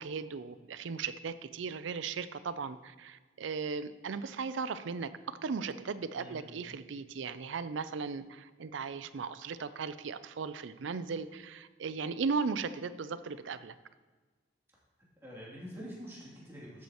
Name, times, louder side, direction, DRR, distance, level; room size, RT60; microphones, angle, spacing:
voice 1, 0.0-13.7, right 5 dB, 80° right, 14 dB, 0.4 m, -37 dB
voice 2, 6.1-6.5 15.2-16.8, equal, 15° right, -7 dB, 2.9 m, -46 dB
12.5 x 8.3 x 3.0 m, 1.4 s
head